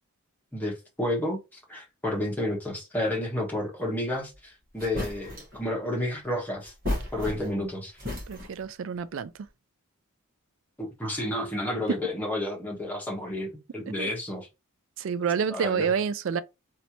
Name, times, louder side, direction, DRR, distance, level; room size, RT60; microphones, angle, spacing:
voice 1, 0.5-6.7 7.1-7.9 10.8-14.5 15.5-15.9, left 1 dB, 10° left, 1.2 m, -31 dB
sound 1, 4.3-4.4 4.8-5.6 6.6-7.7 8.0-8.7, left 1 dB, 40° right, 1.4 m, -34 dB
voice 2, 8.3-9.3 11.9-12.0 13.9-14.1 15.0-16.4, right 6 dB, 60° right, 0.3 m, -28 dB
3.2 x 2.7 x 2.9 m
head